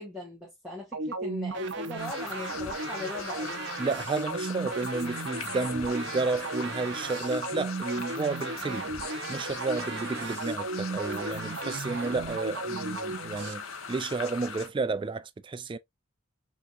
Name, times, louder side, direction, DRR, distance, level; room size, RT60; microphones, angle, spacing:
voice 1, 0.0-3.6, left 2 dB, 5° right, 1.5 m, -39 dB
sound 1, 0.9-13.5, right 3 dB, 60° right, 0.7 m, -35 dB
Underwater creatures in creek, 2.0-14.7, left 6 dB, 85° left, 1.0 m, -40 dB
voice 2, 3.8-8.9 9.3-15.8, right 3 dB, 25° right, 0.3 m, -32 dB
5.8 x 3.0 x 2.5 m
head